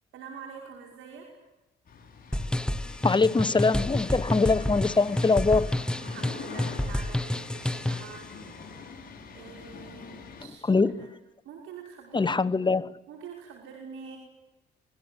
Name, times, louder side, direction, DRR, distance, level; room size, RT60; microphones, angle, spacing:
voice 1, 0.1-1.3 6.0-8.3 9.3-11.2 11.4-12.4 13.1-14.2, right 6 dB, 85° right, 5.6 m, -45 dB
sound 1, 1.9-10.4, left 5 dB, 45° left, 7.9 m, -45 dB
sound 2, 2.3-8.2, left 1 dB, 5° left, 0.9 m, -30 dB
voice 2, 3.0-5.7 10.7-10.9 12.1-12.9, left 4 dB, 25° left, 1.3 m, -23 dB
26.0 x 20.5 x 9.9 m
cardioid pair, 90°, 20 cm